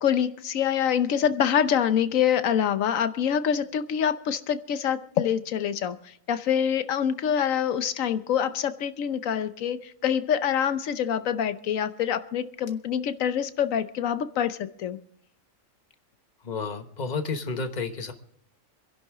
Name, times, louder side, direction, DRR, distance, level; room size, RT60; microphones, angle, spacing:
voice 1, 0.0-6.0 6.3-15.0, left 8 dB, 75° left, 12 dB, 1.2 m, -25 dB
voice 2, 16.4-18.1, left 4 dB, 35° left, 7 dB, 1.2 m, -31 dB
26.5 x 11.0 x 3.6 m, 0.68 s
omnidirectional pair, 1.4 m